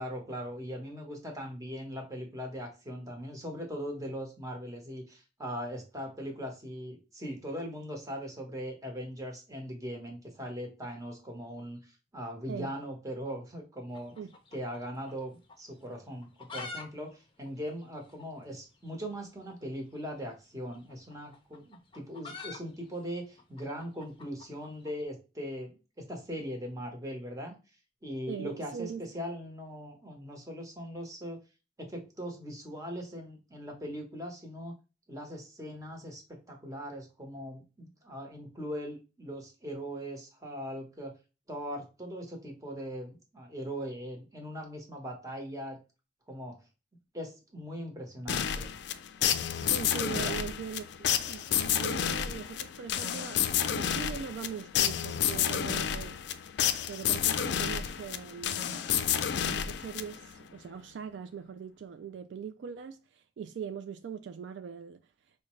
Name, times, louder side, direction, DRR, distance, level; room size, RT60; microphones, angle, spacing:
voice 1, 0.0-11.8 12.1-14.1 14.5-27.5 28.0-31.4 31.8-34.7 35.1-41.1 41.5-45.8 46.3-46.6 47.1-48.7 50.1-50.4, equal, 20° right, 1.0 m, -40 dB
sound 1, 13.9-15.2 15.5-15.6 16.1-16.9 17.1-17.2 17.4-17.5 18.1-18.2 19.4-19.6 20.7-25.0, left 3 dB, 30° left, 0.6 m, -45 dB
voice 2, 28.3-29.0 49.6-56.2 56.9-65.0, right 7 dB, 70° right, 0.3 m, -41 dB
sound 2, 48.3-60.4, left 9 dB, 70° left, 0.4 m, -30 dB
4.8 x 2.2 x 3.0 m
head